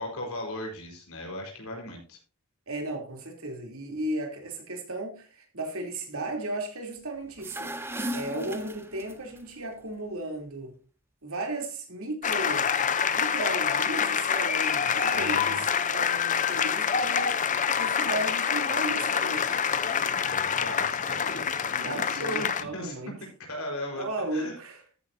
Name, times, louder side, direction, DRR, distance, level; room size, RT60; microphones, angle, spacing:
voice 1, 0.0-2.2 14.9-15.6 20.3-24.0 24.3-24.6, left 1 dB, 70° left, 4.6 m, -38 dB
voice 2, 2.7-7.7 8.1-10.7 11.2-12.7 13.1-17.5 17.8-19.6 21.8-23.1 24.0-24.8, right 2 dB, 70° right, 3.3 m, -35 dB
sound 1, 7.3-9.4, right 1 dB, 10° right, 0.8 m, -36 dB
sound 2, 12.2-22.6, left 7 dB, 35° left, 0.7 m, -26 dB
13.5 x 9.5 x 2.7 m
head